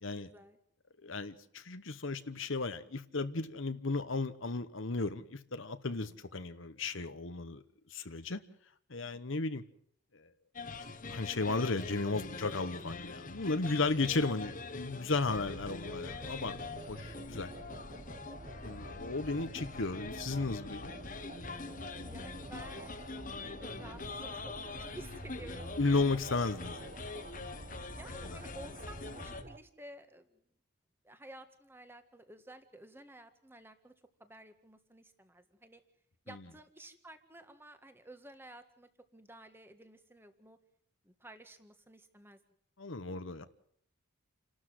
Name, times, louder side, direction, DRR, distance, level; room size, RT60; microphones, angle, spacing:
voice 1, 0.1-0.6 5.9-6.2 9.0-9.2 13.6-13.8 22.1-25.7 27.9-30.4 31.0-33.9 34.2-35.8 36.2-40.6 41.0-42.4, right 1 dB, 10° right, 1.7 m, -53 dB
voice 2, 1.0-7.6 7.9-8.4 8.9-9.6 10.1-10.3 11.1-17.5 18.6-20.9 25.8-26.9 28.3-28.4 42.8-43.4, left 3 dB, 65° left, 1.1 m, -34 dB
sound 1, 10.5-29.4, left 3 dB, 40° left, 1.4 m, -44 dB
sound 2, 15.3-29.6, right 2 dB, 35° right, 1.0 m, -49 dB
29.5 x 12.5 x 7.8 m
head